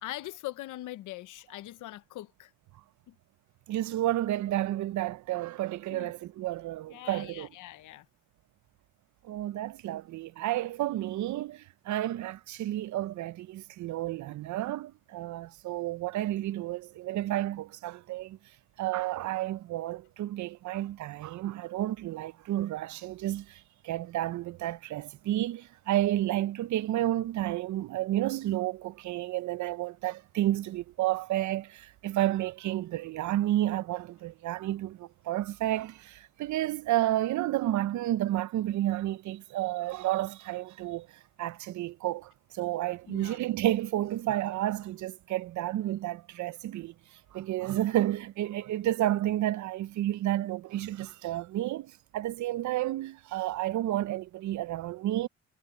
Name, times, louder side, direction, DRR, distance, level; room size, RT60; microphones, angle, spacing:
voice 1, 0.0-2.5 3.1-3.2 5.9-6.1 6.9-8.1 43.1-43.4, left 16 dB, 85° left, 0.8 m, -42 dB
voice 2, 3.7-7.5 9.2-18.4 18.8-41.1 41.4-55.3, right 14 dB, 75° right, 0.7 m, -31 dB
cardioid pair, 90°, 30 cm